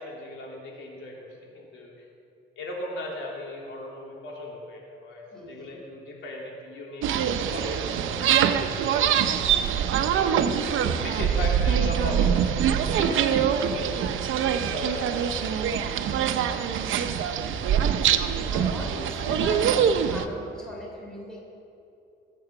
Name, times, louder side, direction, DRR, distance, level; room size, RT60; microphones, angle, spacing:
voice 1, 0.0-1.9 2.6-7.1 7.4-9.2 10.2-10.6 11.0-16.9, left 1 dB, 80° left, -2 dB, 3.1 m, -38 dB
voice 2, 5.3-5.8 10.1-10.5 13.1-13.4 15.0-15.1 18.5-21.4, left 1 dB, 5° left, -4 dB, 3.9 m, -38 dB
sound 1, 7.0-20.3, right 8 dB, 85° right, 0.8 m, -24 dB
21.5 x 7.8 x 6.0 m, 2.7 s
cardioid pair, 150°, 20 cm